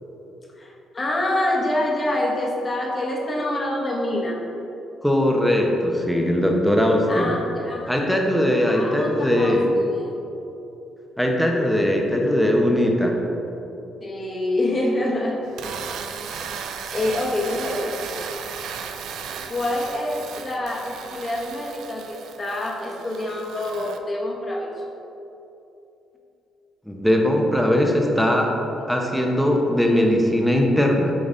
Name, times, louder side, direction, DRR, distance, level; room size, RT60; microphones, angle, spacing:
voice 1, 0.6-4.4 7.1-8.1 8.7-10.2 14.0-15.4 16.1-16.2 16.9-18.0 19.5-24.7 29.8-30.1, left 1 dB, 30° left, -2 dB, 1.2 m, -26 dB
voice 2, 5.0-7.3 7.9-9.7 11.2-13.1 26.9-28.5 28.9-31.1, left 1 dB, ahead, 0 dB, 0.9 m, -20 dB
sound 1, 15.5-24.0, right 6 dB, 75° right, 0.4 m, -35 dB
7.0 x 3.9 x 3.9 m, 2.9 s
cardioid pair, 90°, 0 cm